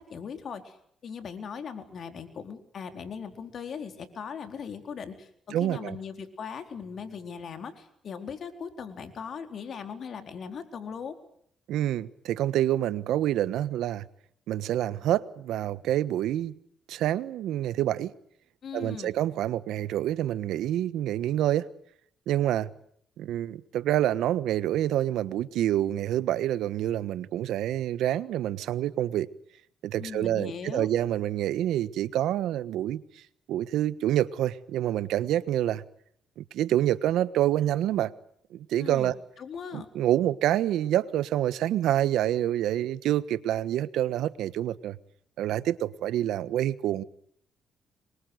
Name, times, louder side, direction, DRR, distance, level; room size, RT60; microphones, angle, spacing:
voice 1, 0.1-0.8 1.0-11.1 18.6-19.1 30.0-30.9 38.8-39.9, left 6 dB, 55° left, 4.2 m, -39 dB
voice 2, 5.5-6.0 11.7-14.1 14.5-16.5 16.9-18.1 18.7-21.7 22.3-22.7 23.2-29.3 29.8-33.0 33.5-35.8 36.4-38.1 38.5-39.2 39.7-45.0 45.4-47.0, right 12 dB, 85° right, 1.3 m, -27 dB
26.5 x 23.0 x 8.0 m
cardioid pair, 90°, 0 cm